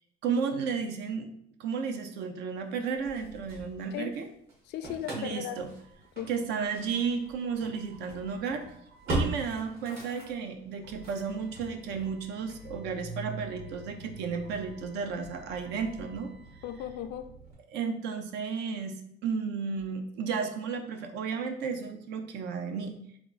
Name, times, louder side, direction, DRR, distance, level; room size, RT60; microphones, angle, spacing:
voice 1, 0.2-1.3 1.6-4.3 5.2-5.7 6.3-8.6 9.1-16.3 17.7-22.9, right 5 dB, 85° right, 0.5 m, -33 dB
Engine starting / Slam, 2.8-4.2 4.5-17.5, right 2 dB, 65° right, 1.4 m, -41 dB
voice 2, 4.7-5.6 6.2-6.3 16.6-17.3, left 10 dB, 80° left, 0.4 m, -36 dB
3.5 x 2.3 x 3.7 m
cardioid pair, 110°, 17 cm